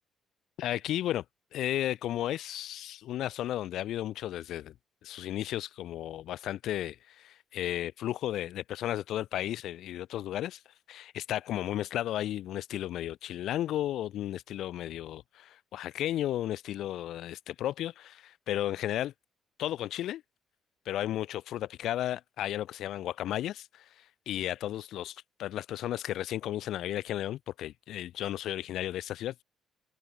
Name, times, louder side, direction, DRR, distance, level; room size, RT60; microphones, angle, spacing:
voice 1, 0.6-1.2 1.5-4.7 5.0-10.6 10.9-19.1 19.6-20.2 20.8-29.4, left 13 dB, 80° left, 3.1 m, -34 dB
cardioid pair, 90°, 0 cm